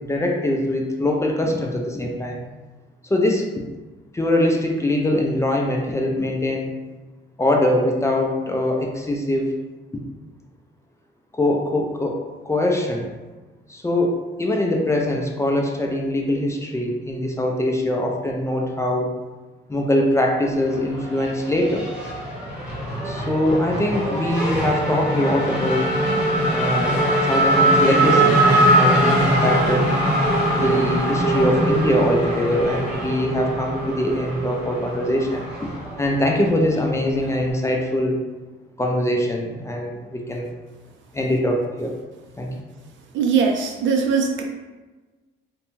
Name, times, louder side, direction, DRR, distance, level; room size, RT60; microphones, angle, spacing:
voice 1, 0.1-2.4 3.1-3.5 4.1-6.7 7.4-9.5 9.9-10.0 11.4-13.1 13.7-19.1 19.7-21.9 23.0-25.9 26.5-26.9 27.2-29.9 30.5-35.7 36.0-38.2 38.8-40.5 41.1-42.0 42.4-42.5, left 1 dB, 15° left, 0 dB, 0.4 m, -22 dB
Race car auto racing / Accelerating revving vroom, 20.5-37.5, right 1 dB, 5° right, 0.9 m, -22 dB
voice 2, 43.1-44.4, right 5 dB, 70° right, 2 dB, 0.5 m, -20 dB
2.6 x 2.2 x 3.0 m, 1.2 s
cardioid pair, 90°, 20 cm